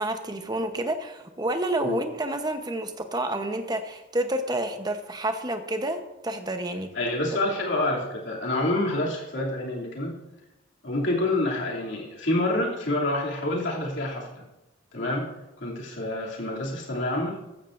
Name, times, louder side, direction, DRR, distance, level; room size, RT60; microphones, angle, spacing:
voice 1, 0.0-6.9, right 1 dB, 20° right, 6 dB, 0.9 m, -29 dB
voice 2, 6.9-10.1 10.8-14.4 14.9-15.3 15.6-17.4, left 1 dB, 65° left, -3 dB, 2.8 m, -27 dB
15.0 x 12.5 x 2.6 m, 1.0 s
head